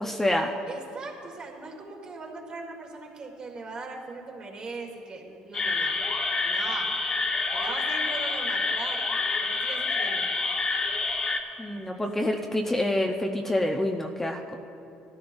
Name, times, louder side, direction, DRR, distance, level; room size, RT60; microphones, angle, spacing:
voice 1, 0.0-0.5 11.6-14.6, left 1 dB, 10° left, 2 dB, 0.7 m, -27 dB
voice 2, 0.7-5.9 6.4-6.9 7.5-10.3 11.7-12.3, right 3 dB, 40° right, 1 dB, 1.9 m, -40 dB
sound 1, 5.5-11.4, left 3 dB, 35° left, 1.2 m, -28 dB
16.5 x 13.5 x 2.6 m, 2.7 s
supercardioid pair, 90°, 2 cm